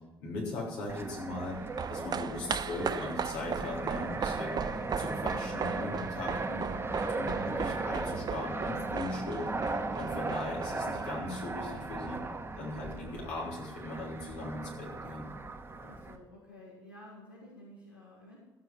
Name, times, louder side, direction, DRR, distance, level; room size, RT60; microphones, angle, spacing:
voice 1, 0.2-1.6 1.9-4.6 5.0-9.4 10.0-12.2 12.6-15.3, left 2 dB, 70° left, -3 dB, 3.7 m, -39 dB
Fixed-wing aircraft airplane, 0.9-16.2, right 2 dB, 20° right, 1.5 m, -37 dB
sound 1, 1.4-12.0 12.3-12.4, right 7 dB, 35° right, 0.6 m, -38 dB
voice 2, 15.8-18.4, left 1 dB, 90° left, -7 dB, 2.1 m, -52 dB
14.5 x 7.9 x 6.1 m, 1.1 s
figure-of-eight pair, 50°, 11 cm